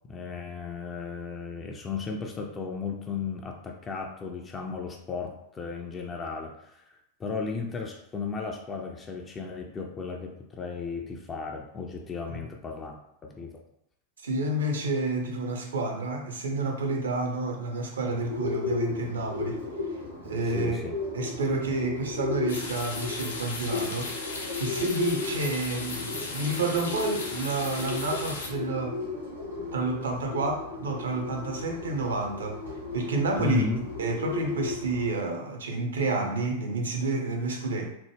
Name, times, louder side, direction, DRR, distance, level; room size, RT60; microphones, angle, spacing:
voice 1, 0.1-6.9 7.2-13.5 20.5-21.0 33.4-33.8, left 5 dB, 20° left, 1 dB, 0.4 m, -35 dB
voice 2, 14.2-19.6 20.2-20.8 21.1-24.1 24.6-29.0 29.7-32.6 32.9-33.6 34.0-37.9, right 2 dB, 65° right, 2 dB, 0.6 m, -29 dB
Bird, 18.1-35.1, left 4 dB, 80° right, 1.4 m, -35 dB
sound 1, 22.5-28.5, left 3 dB, 65° left, 0.6 m, -37 dB
2.9 x 2.0 x 3.3 m, 0.77 s
figure-of-eight pair, 90°, 0 cm